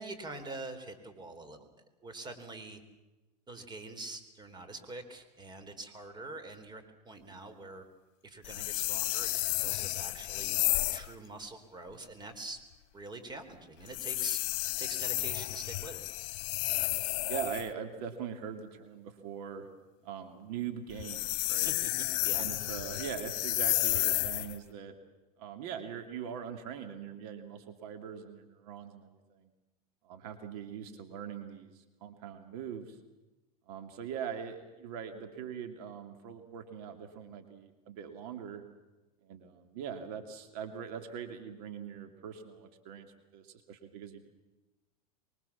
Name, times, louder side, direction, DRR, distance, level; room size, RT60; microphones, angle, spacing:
voice 1, 0.0-1.6 2.0-2.8 3.5-7.8 8.2-9.3 9.6-10.6 10.9-12.6 12.9-14.4 14.8-16.0 21.6-22.4, right 2 dB, 20° right, 9 dB, 4.0 m, -45 dB
sound 1, 8.4-11.1 13.9-17.7 20.9-24.6, left 19 dB, 55° left, 1.3 m, -32 dB
voice 2, 17.3-19.7 20.0-21.7 22.4-24.9 25.4-29.5 30.0-33.0 33.7-38.6 39.2-44.3, right 8 dB, 60° right, 6 dB, 2.9 m, -42 dB
24.5 x 23.5 x 7.3 m, 1.1 s
hypercardioid pair, 100°, 21 cm